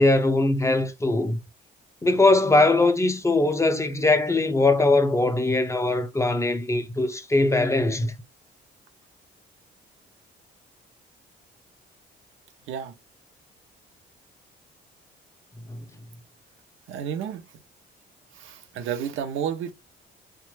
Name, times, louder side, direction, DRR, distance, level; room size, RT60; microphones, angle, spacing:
voice 1, 0.0-1.4 2.0-8.1 15.7-15.8, left 2 dB, 15° left, 0.4 m, -21 dB
voice 2, 16.9-17.4 18.3-19.7, right 8 dB, 85° right, 0.5 m, -31 dB
2.9 x 2.2 x 3.1 m
cardioid pair, 90°, 20 cm